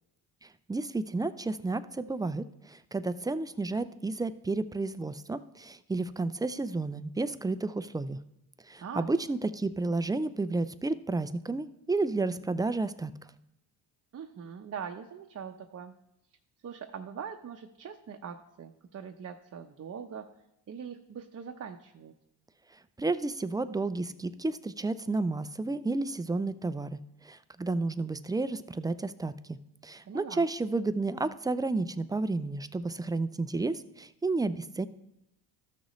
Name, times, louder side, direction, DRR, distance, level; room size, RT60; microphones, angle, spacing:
voice 1, 0.4-8.2 8.7-13.1 23.0-27.0 27.2-29.6 29.8-34.9, right 3 dB, 10° right, 13 dB, 0.3 m, -31 dB
voice 2, 14.1-15.9 16.6-20.3 20.7-22.1 30.1-30.5, right 7 dB, 35° right, 3 dB, 0.7 m, -42 dB
13.5 x 6.3 x 3.1 m, 0.85 s
cardioid pair, 85°, 42 cm